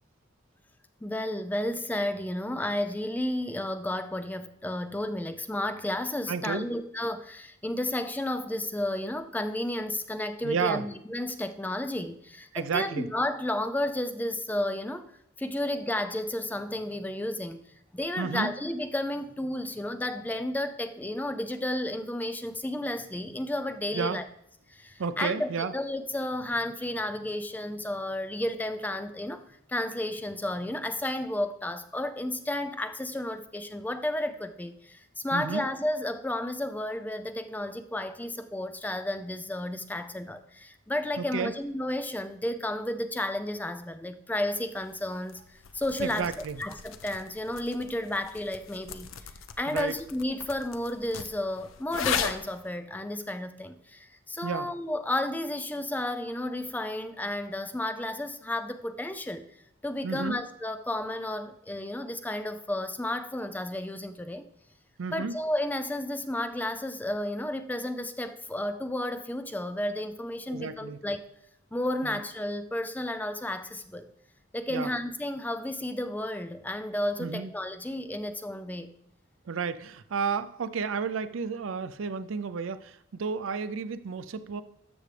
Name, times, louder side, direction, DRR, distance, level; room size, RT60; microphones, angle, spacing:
voice 1, 1.0-15.1 15.4-17.7 17.9-24.3 24.7-46.3 46.6-49.1 49.6-59.5 59.8-64.5 65.1-71.2 71.7-74.1 74.5-78.9, left 1 dB, 10° left, 9 dB, 0.4 m, -32 dB
voice 2, 6.3-6.7 10.4-10.9 12.5-13.1 18.2-18.5 23.9-24.2 25.0-25.7 35.3-35.6 41.2-41.5 46.0-46.6 49.7-50.0 54.4-54.7 60.0-60.4 65.0-65.3 70.5-71.0 72.0-72.2 74.7-74.9 77.2-77.5 79.5-84.6, right 5 dB, 80° right, 13 dB, 0.5 m, -32 dB
sound 1, 44.6-52.7, left 7 dB, 90° left, 0.6 m, -38 dB
13.0 x 6.1 x 3.3 m, 0.76 s
head